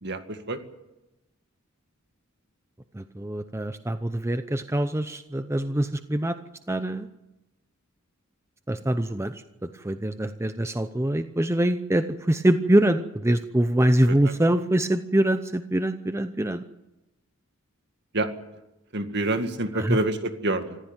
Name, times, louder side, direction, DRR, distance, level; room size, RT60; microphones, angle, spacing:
voice 1, 0.0-0.6 14.1-14.3 18.1-18.3 18.9-20.8, right 2 dB, 55° right, 7 dB, 2.1 m, -27 dB
voice 2, 2.9-6.4 6.7-7.1 8.7-9.3 9.7-16.6 19.7-20.0, right 1 dB, 15° right, 9 dB, 0.7 m, -24 dB
26.5 x 15.0 x 9.0 m, 0.97 s
head